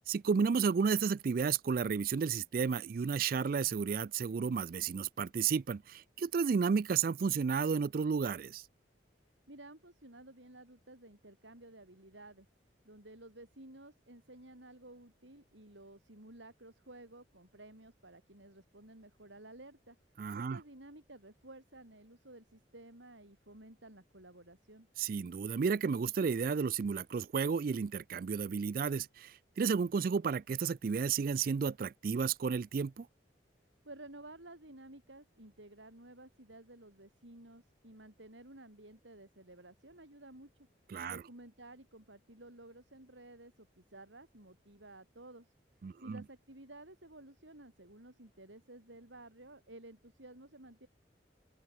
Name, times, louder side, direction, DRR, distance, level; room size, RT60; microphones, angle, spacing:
voice 1, 0.1-8.6 20.2-20.6 25.0-33.1 40.9-41.2 45.8-46.2, right 6 dB, 50° right, 0.3 m, -32 dB
voice 2, 9.5-12.5 12.8-20.0 20.3-24.9 33.8-40.7 41.1-45.5 46.0-50.9, right 1 dB, 90° right, 6.5 m, -54 dB
open air
head